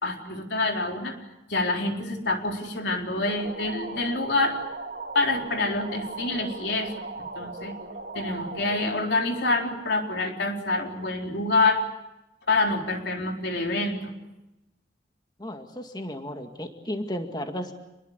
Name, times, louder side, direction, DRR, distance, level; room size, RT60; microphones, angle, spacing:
voice 1, 0.0-1.2 1.5-4.6 5.1-7.7 8.1-11.8 12.5-14.1, left 2 dB, 70° left, 2 dB, 4.1 m, -26 dB
sound 1, 3.1-10.5, right 3 dB, 50° right, 2.5 m, -39 dB
voice 2, 15.4-17.7, equal, 20° left, 5 dB, 2.1 m, -34 dB
28.0 x 21.0 x 8.1 m, 0.95 s
head